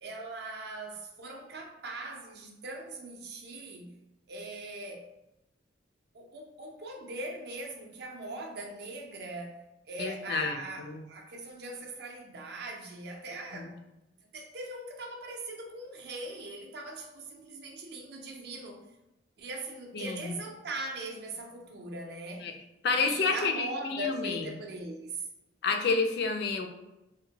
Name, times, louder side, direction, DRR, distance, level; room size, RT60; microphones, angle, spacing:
voice 1, 0.0-4.0 4.3-5.0 6.1-9.6 9.9-13.7 14.3-18.8 19.4-22.5 22.9-25.3, right 2 dB, 55° right, 1 dB, 0.5 m, -40 dB
voice 2, 10.0-11.0 13.5-13.7 19.9-20.3 22.4-22.5 22.8-24.4 25.6-26.7, left 4 dB, 55° left, 3 dB, 0.3 m, -30 dB
2.7 x 2.1 x 2.7 m, 0.96 s
head